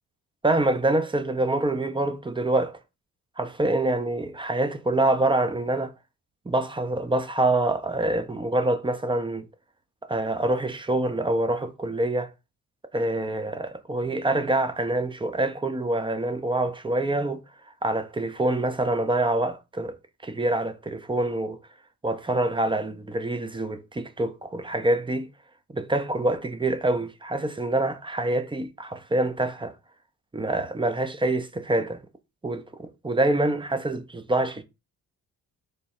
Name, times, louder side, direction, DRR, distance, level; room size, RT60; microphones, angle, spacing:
voice 1, 0.4-2.8 3.4-5.9 6.5-9.5 10.1-12.3 12.9-17.4 17.8-20.0 20.2-21.6 22.0-25.3 25.7-29.8 30.3-32.0 32.4-34.6, right 2 dB, 10° right, 0.7 m, -26 dB
3.3 x 2.2 x 4.2 m
hypercardioid pair, 45°, 42 cm